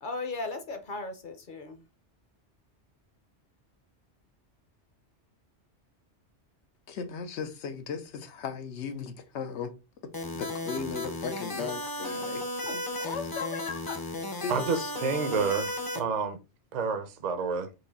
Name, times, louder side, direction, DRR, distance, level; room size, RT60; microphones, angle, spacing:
voice 1, 0.0-1.9 12.6-12.8, left 3 dB, 50° left, 1.0 m, -37 dB
voice 2, 6.9-9.7 10.0-12.4 13.0-15.3, left 5 dB, 80° left, 1.0 m, -37 dB
sound 1, 10.1-16.0, left 1 dB, 25° left, 0.6 m, -35 dB
voice 3, 14.5-16.4 16.7-17.7, right 5 dB, 45° right, 0.7 m, -29 dB
4.9 x 2.7 x 4.0 m
omnidirectional pair, 1.2 m